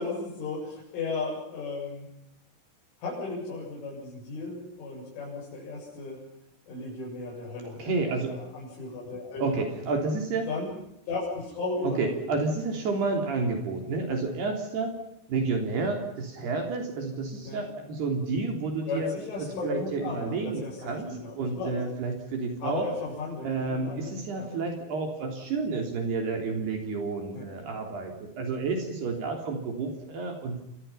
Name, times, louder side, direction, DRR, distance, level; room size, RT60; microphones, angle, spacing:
voice 1, 0.0-2.1 3.0-6.2 6.7-7.9 8.2-9.5 10.5-10.7 11.1-12.2 17.5-17.6 18.9-21.8 22.6-24.5 27.3-27.5, left 3 dB, 80° left, -5 dB, 10.5 m, -35 dB
voice 2, 7.6-8.4 9.4-10.5 11.8-15.0 15.3-19.1 19.4-21.1 21.4-22.9 23.4-30.6, right 3 dB, 60° right, 3 dB, 5.3 m, -30 dB
29.5 x 24.0 x 5.7 m, 0.81 s
omnidirectional pair, 5.5 m